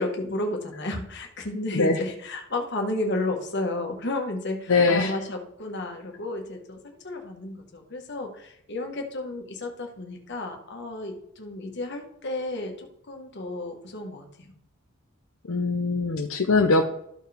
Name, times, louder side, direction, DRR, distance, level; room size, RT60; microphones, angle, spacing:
voice 1, 0.0-14.5, left 2 dB, 55° left, 3 dB, 1.5 m, -32 dB
voice 2, 4.7-5.1 15.5-16.9, left 3 dB, 75° left, 4 dB, 0.7 m, -22 dB
13.5 x 4.7 x 3.5 m, 0.72 s
head